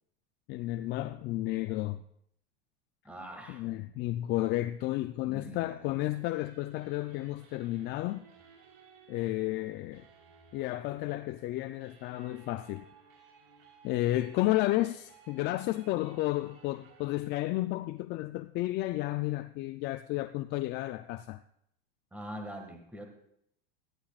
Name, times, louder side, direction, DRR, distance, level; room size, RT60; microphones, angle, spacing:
voice 1, 0.5-2.0 3.5-8.2 9.1-10.0 10.5-12.8 13.8-21.4, left 16 dB, 35° left, 0.4 m, -32 dB
voice 2, 3.0-3.6 5.2-5.9 22.1-23.1, equal, 5° right, 1.8 m, -43 dB
sound 1, 6.1-17.3, right 5 dB, 55° right, 3.6 m, -59 dB
17.5 x 13.0 x 2.4 m
supercardioid pair, 130°, 31 cm